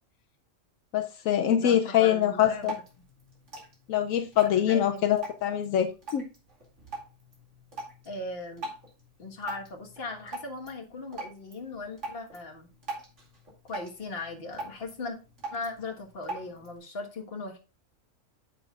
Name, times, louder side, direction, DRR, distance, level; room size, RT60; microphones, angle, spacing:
voice 1, 0.9-2.7 3.9-6.2, left 10 dB, 80° left, 7 dB, 1.0 m, -24 dB
voice 2, 1.5-2.7 4.4-5.0 8.0-8.7 9.2-12.7 13.6-15.2 15.5-17.6, left 2 dB, 45° left, 2 dB, 1.6 m, -38 dB
Drip, 2.3-16.8, right 2 dB, 60° right, 2.7 m, -43 dB
8.9 x 7.1 x 2.3 m, 0.30 s
omnidirectional pair, 1.4 m